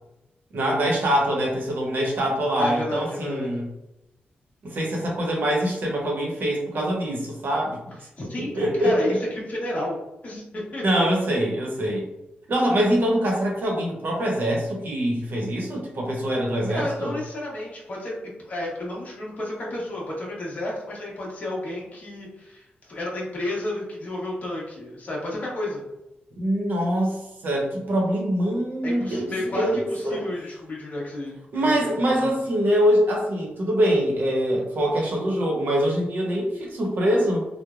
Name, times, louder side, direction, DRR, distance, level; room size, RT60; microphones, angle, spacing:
voice 1, 0.5-3.7 4.6-7.9 8.4-9.2 10.8-12.1 12.5-17.1 26.4-30.3 31.5-37.5, equal, 65° right, -1 dB, 0.8 m, -24 dB
voice 2, 2.6-3.5 8.2-10.0 10.2-10.8 16.7-18.1 18.4-25.8 28.8-32.3, left 1 dB, 45° left, -4 dB, 1.0 m, -32 dB
3.1 x 2.1 x 2.4 m, 0.91 s
cardioid pair, 95°, 4 cm